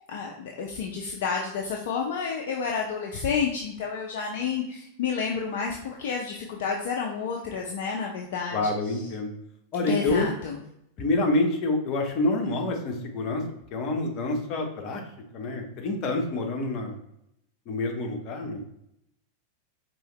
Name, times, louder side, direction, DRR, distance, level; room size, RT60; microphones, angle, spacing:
voice 1, 0.0-8.6 9.9-10.5, left 6 dB, 55° left, 0 dB, 0.6 m, -30 dB
voice 2, 8.5-9.3 9.7-10.3 11.0-13.4 13.7-15.0 15.3-17.0 17.7-18.6, left 2 dB, 40° left, 2 dB, 1.0 m, -27 dB
4.7 x 3.0 x 3.1 m, 0.77 s
figure-of-eight pair, 90°, 0 cm